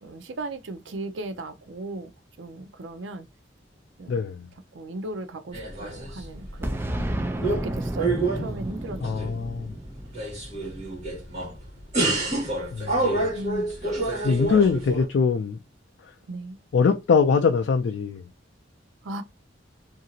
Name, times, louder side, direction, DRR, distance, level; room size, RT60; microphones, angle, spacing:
voice 1, 0.0-3.3 4.0-4.2 4.7-6.8 7.4-9.3 10.5-10.8 13.4-13.7 16.3-16.6 19.0-19.2, right 2 dB, 85° right, 0.5 m, -37 dB
voice 2, 4.1-4.5 9.0-9.8 12.7-13.3 14.2-15.6 16.7-18.3, left 5 dB, 70° left, 0.4 m, -23 dB
sound 1, 5.5-6.6 6.9-7.7 8.0-9.6 10.0-11.6 11.9-15.1, right 2 dB, 40° right, 1.7 m, -28 dB
Boom, 6.6-11.3, right 1 dB, 15° right, 0.4 m, -31 dB
2.8 x 2.6 x 2.7 m
head